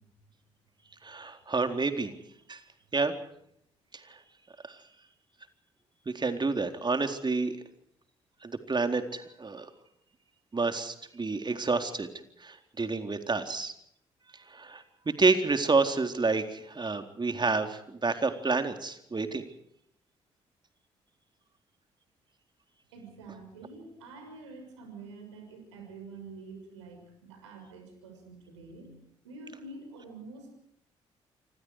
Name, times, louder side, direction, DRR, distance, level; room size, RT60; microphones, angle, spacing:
voice 1, 1.0-2.1 2.5-2.6 2.9-3.2 4.7-4.8 6.1-7.5 8.4-9.7 10.5-12.1 12.4-13.7 14.5-14.8 15.2-19.4, right 3 dB, 30° right, 6 dB, 4.0 m, -29 dB
voice 2, 22.9-28.9 29.2-30.6, right 3 dB, 85° right, 4 dB, 6.5 m, -47 dB
28.5 x 25.0 x 4.9 m, 0.72 s
hypercardioid pair, 45°, 15 cm